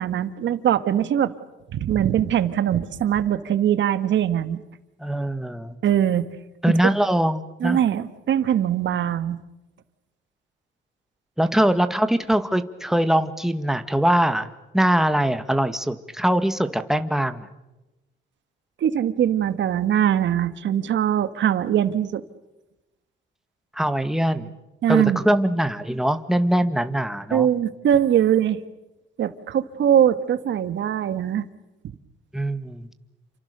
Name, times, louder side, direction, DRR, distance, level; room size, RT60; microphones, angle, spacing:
voice 1, 0.0-1.3 1.7-4.6 5.8-6.3 6.7-6.8 7.6-9.4 18.8-22.2 24.8-25.2 27.3-28.6 29.2-31.4, right 10 dB, 70° right, 12 dB, 1.7 m, -21 dB
voice 2, 5.0-5.8 6.6-7.8 11.4-17.5 23.7-24.5 24.9-27.5 32.3-32.9, right 1 dB, ahead, 9 dB, 1.9 m, -22 dB
29.5 x 26.5 x 6.9 m, 1.0 s
cardioid pair, 90°, 20 cm